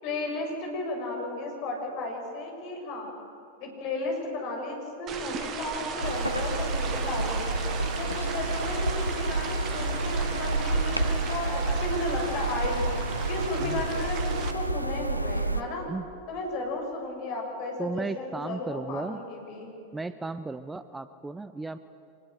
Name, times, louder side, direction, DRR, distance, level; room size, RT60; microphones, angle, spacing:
voice 1, 0.0-3.1 3.6-7.6 7.9-12.9 13.2-15.9 16.3-19.7, left 2 dB, 45° left, 1 dB, 7.1 m, -34 dB
sound 1, 5.1-14.5, right 6 dB, 30° right, 2.1 m, -36 dB
sound 2, 6.0-15.6, right 2 dB, 90° right, 0.9 m, -29 dB
sound 3, 8.0-14.0, left 1 dB, 5° left, 5.8 m, -53 dB
voice 2, 17.8-19.2 19.9-21.8, right 3 dB, 10° right, 13 dB, 0.7 m, -35 dB
25.0 x 21.0 x 8.1 m, 2.9 s
figure-of-eight pair, 90°, 0 cm